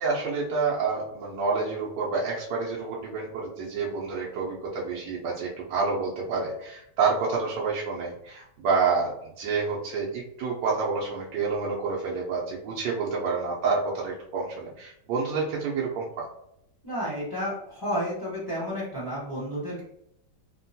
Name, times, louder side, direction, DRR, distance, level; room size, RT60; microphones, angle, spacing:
voice 1, 0.0-16.3, right 4 dB, 85° right, -4 dB, 1.3 m, -28 dB
voice 2, 16.8-19.8, equal, 20° left, -10 dB, 0.7 m, -31 dB
3.5 x 2.2 x 2.6 m, 0.76 s
omnidirectional pair, 1.8 m